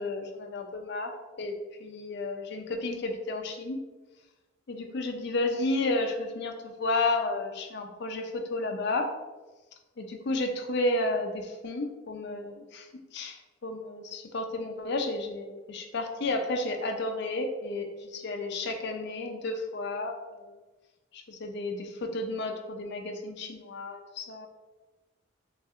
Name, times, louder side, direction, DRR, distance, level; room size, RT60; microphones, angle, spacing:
voice 1, 0.0-3.8 4.7-9.1 10.0-12.9 13.1-13.4 13.6-20.6 21.1-24.5, left 2 dB, 55° left, 4 dB, 0.5 m, -32 dB
5.4 x 2.4 x 2.4 m, 1.2 s
head